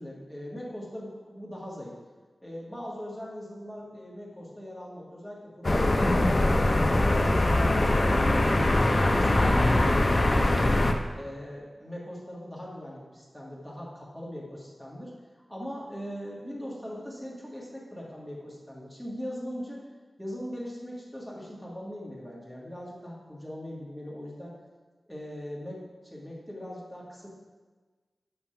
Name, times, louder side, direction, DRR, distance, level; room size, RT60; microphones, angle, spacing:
voice 1, 0.0-1.9 2.4-6.5 6.8-10.8 11.1-15.1 15.5-19.9 20.2-24.6 25.1-27.3, equal, 5° left, -4 dB, 1.5 m, -40 dB
sound 1, 5.6-10.9, left 1 dB, 35° left, 0.5 m, -22 dB
7.1 x 3.5 x 4.4 m, 1.3 s
wide cardioid pair, 95°, 0 cm